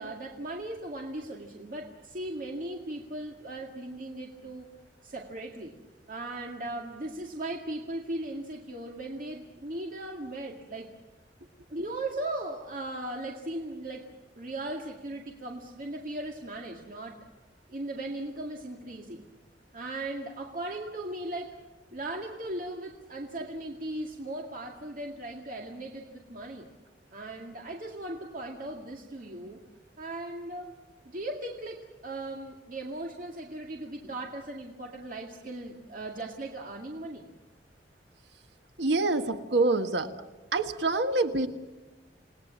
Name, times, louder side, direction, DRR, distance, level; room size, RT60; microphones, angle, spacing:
voice 1, 0.0-4.7 5.0-5.7 6.1-10.9 11.7-14.1 14.4-17.2 17.7-19.2 19.7-21.5 21.9-26.7 27.1-29.6 30.0-30.8 31.0-37.3, right 1 dB, 50° right, 1 dB, 2.2 m, -38 dB
voice 2, 38.8-40.1 40.5-41.5, right 2 dB, 80° right, 8 dB, 1.5 m, -26 dB
29.0 x 19.5 x 7.5 m, 1.2 s
head